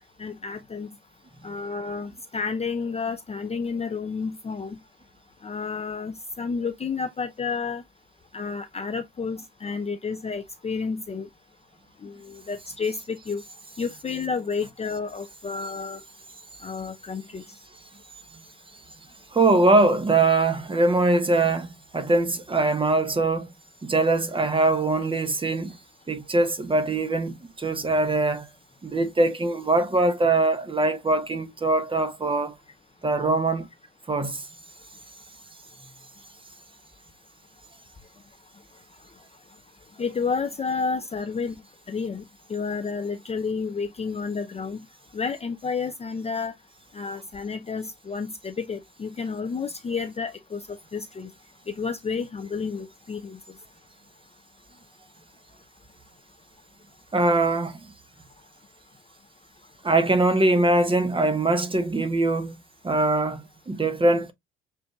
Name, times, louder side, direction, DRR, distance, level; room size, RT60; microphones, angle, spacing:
voice 1, 0.2-0.9 1.4-4.8 5.4-7.8 8.3-11.3 12.0-13.4 13.8-16.0 16.6-17.4 40.0-41.5 41.9-42.2 42.5-44.8 45.1-46.5 46.9-51.3 51.8-53.4, left 5 dB, 20° left, 0.6 m, -30 dB
voice 2, 19.3-23.5 23.8-25.8 26.1-28.5 28.8-32.6 33.0-33.7 34.1-34.4 57.1-57.8 59.8-62.6 62.8-64.3, right 2 dB, 15° right, 1.0 m, -22 dB
6.8 x 2.5 x 2.3 m
hypercardioid pair, 60°, 30 cm